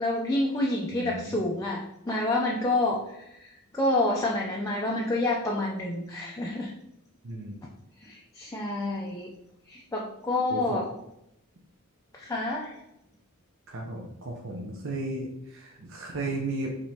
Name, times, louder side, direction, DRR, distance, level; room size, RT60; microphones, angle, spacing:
voice 1, 0.0-6.7 8.0-9.3 9.7-10.9 12.1-12.7, left 2 dB, 15° left, -3 dB, 0.4 m, -28 dB
voice 2, 0.9-1.4 7.2-7.6 10.5-10.8 13.7-16.8, right 2 dB, 60° right, -1 dB, 0.7 m, -35 dB
5.1 x 3.0 x 2.8 m, 0.83 s
head